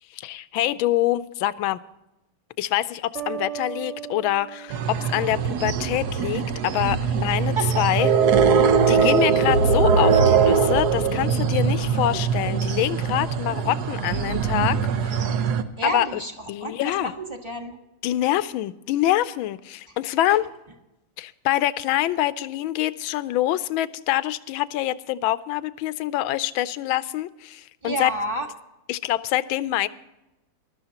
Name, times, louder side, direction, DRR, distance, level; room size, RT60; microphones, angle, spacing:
voice 1, 0.1-1.8 2.6-8.1 8.9-15.2 15.8-16.1 16.5-17.1 18.0-20.4 21.2-28.1 28.9-29.9, left 14 dB, 75° left, 15 dB, 1.3 m, -25 dB
sound 1, 3.2-6.0, right 10 dB, 75° right, 2.6 m, -37 dB
sound 2, 4.7-15.6, right 6 dB, 60° right, 1.1 m, -21 dB
voice 2, 7.5-8.1 15.8-17.8 19.9-20.0 20.3-20.4 27.8-28.5, right 2 dB, 15° right, 2 dB, 1.2 m, -30 dB
21.0 x 13.0 x 2.9 m, 0.94 s
omnidirectional pair, 2.4 m